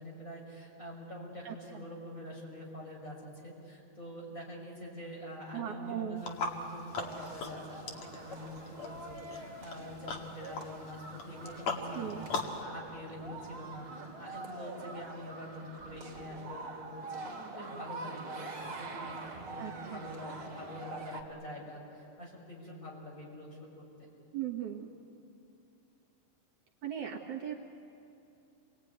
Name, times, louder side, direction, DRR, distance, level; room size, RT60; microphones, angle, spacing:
voice 1, 0.0-12.3 12.6-18.5 18.8-24.1, left 1 dB, 20° left, -2 dB, 6.3 m, -46 dB
voice 2, 1.4-1.8 5.5-6.3 11.9-12.3 19.6-20.0 24.3-24.9 26.8-27.5, right 10 dB, 65° right, 0 dB, 2.7 m, -38 dB
sound 1, 6.2-12.6, left 3 dB, 55° left, 3.1 m, -40 dB
sound 2, 7.0-21.2, right 3 dB, 40° right, 3.0 m, -45 dB
29.0 x 21.5 x 9.5 m, 2.7 s
omnidirectional pair, 3.9 m